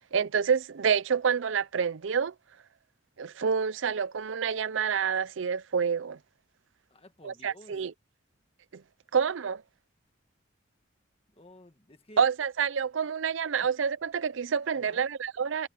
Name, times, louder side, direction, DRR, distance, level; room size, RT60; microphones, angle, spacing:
voice 1, 0.1-2.3 3.2-6.2 7.2-7.9 8.7-8.8 9.1-9.6 12.2-15.7, right 6 dB, 80° right, 0.5 m, -28 dB
voice 2, 6.9-7.8 11.3-12.2 13.6-13.7 14.7-15.0, left 1 dB, 30° left, 1.6 m, -52 dB
head